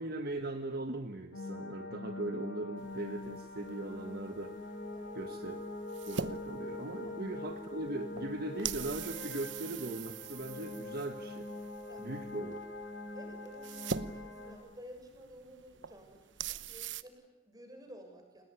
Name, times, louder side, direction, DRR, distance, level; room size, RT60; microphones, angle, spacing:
voice 1, 0.0-4.5 5.1-5.6 6.1-11.5 12.0-12.6, right 2 dB, 55° right, 7 dB, 1.5 m, -39 dB
sound 1, 1.3-14.5, left 2 dB, 85° left, 6.9 m, -43 dB
sound 2, 2.8-17.0, right 6 dB, 75° right, 0.9 m, -44 dB
voice 2, 13.1-18.4, equal, 20° right, 4 dB, 6.9 m, -53 dB
29.5 x 20.0 x 9.8 m, 0.94 s
head